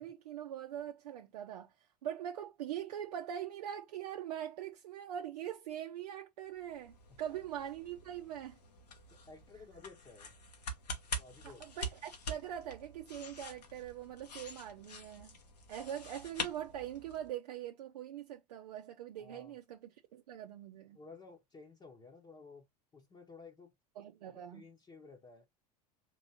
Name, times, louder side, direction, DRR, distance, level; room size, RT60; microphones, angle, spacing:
voice 1, 0.0-1.7 2.0-8.6 11.4-15.3 15.7-21.0 24.0-24.6, right 10 dB, 70° right, 0.6 m, -42 dB
sound 1, 6.5-17.3, left 2 dB, 80° left, 1.3 m, -46 dB
voice 2, 9.1-10.3 11.2-11.6 19.2-19.5 20.9-22.7 22.9-23.7 24.3-25.5, left 4 dB, 20° left, 1.0 m, -54 dB
4.6 x 2.9 x 2.8 m
figure-of-eight pair, 80°, 21 cm